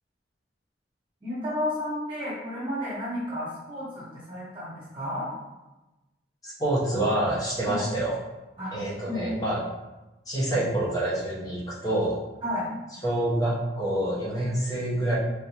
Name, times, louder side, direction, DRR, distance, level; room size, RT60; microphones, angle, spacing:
voice 1, 1.2-5.3 7.6-7.8 8.6-9.3 12.4-12.7, left 1 dB, 30° right, -9 dB, 1.0 m, -32 dB
voice 2, 6.4-8.2 8.7-9.6 10.3-12.2 13.0-15.2, right 1 dB, 20° left, -7 dB, 0.8 m, -27 dB
3.4 x 2.6 x 2.8 m, 1.0 s
head